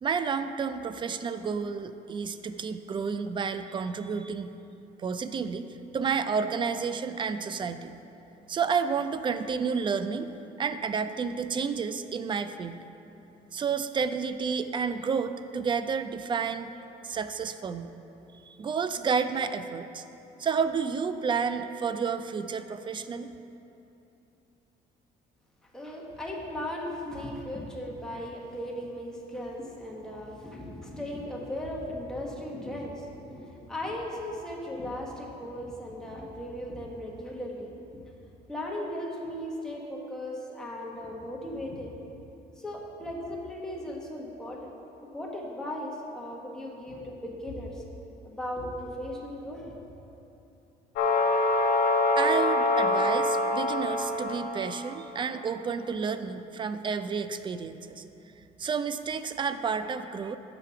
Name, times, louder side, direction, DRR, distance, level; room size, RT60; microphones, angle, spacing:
voice 1, 0.0-4.5 5.0-5.7 5.9-7.9 8.5-10.3 10.6-12.8 13.5-16.7 17.0-17.9 18.5-20.0 20.4-23.3 52.2-58.0 58.6-60.4, right 6 dB, 30° right, 11 dB, 0.3 m, -30 dB
voice 2, 25.7-37.7 38.5-41.9 42.5-44.7 45.0-47.8 48.2-49.8, left 1 dB, 5° left, -3 dB, 1.3 m, -37 dB
sound 1, 51.0-55.0, left 2 dB, 75° left, 0.9 m, -25 dB
6.9 x 5.7 x 5.7 m, 2.9 s
cardioid pair, 110°, 17 cm